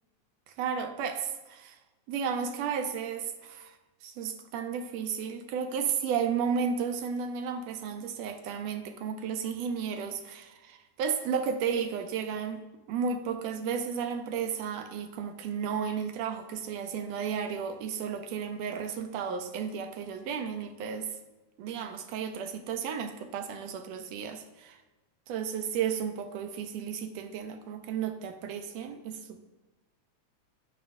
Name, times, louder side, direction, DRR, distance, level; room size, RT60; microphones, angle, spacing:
voice 1, 0.6-1.8 2.1-3.8 4.0-12.6 12.9-21.1 21.6-24.8 25.3-29.4, right 7 dB, 75° right, 7 dB, 1.8 m, -33 dB
10.5 x 9.2 x 2.6 m, 1.1 s
omnidirectional pair, 3.4 m